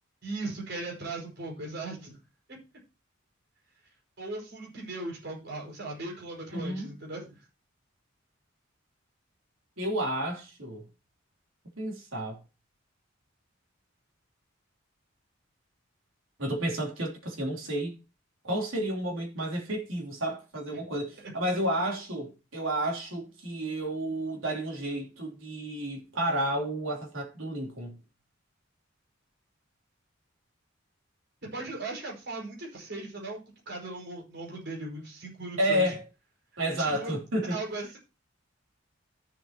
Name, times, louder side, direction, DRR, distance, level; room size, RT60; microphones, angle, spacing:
voice 1, 0.2-2.2 2.5-2.6 4.2-7.4 21.2-21.5 31.5-33.4 33.7-35.9 36.8-37.2 37.5-38.0, right 2 dB, 55° right, 5.5 m, -38 dB
voice 2, 6.5-6.9 9.8-10.8 11.8-12.4 16.4-17.9 18.4-28.0 35.6-36.0 36.6-37.6, right 1 dB, 80° right, 3.5 m, -31 dB
14.0 x 7.5 x 3.0 m
head